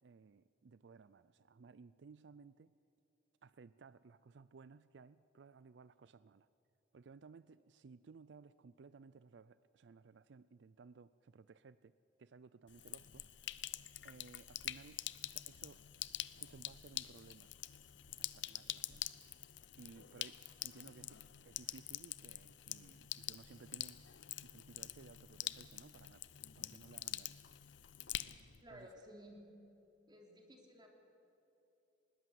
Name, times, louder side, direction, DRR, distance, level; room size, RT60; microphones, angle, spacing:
voice 1, 0.0-2.7 3.4-6.5 6.9-11.9 12.2-13.7 14.0-15.8 16.3-17.5 18.2-19.5 19.8-24.0 24.4-26.2 26.6-27.4 28.7-28.9, right 4 dB, 70° right, 16 dB, 0.4 m, -59 dB
Sink (filling or washing), 12.7-28.6, left 14 dB, 80° left, 0.6 m, -46 dB
voice 2, 28.6-29.4 30.1-30.9, equal, 25° right, 1 dB, 3.1 m, -56 dB
20.5 x 19.0 x 7.9 m, 3.0 s
head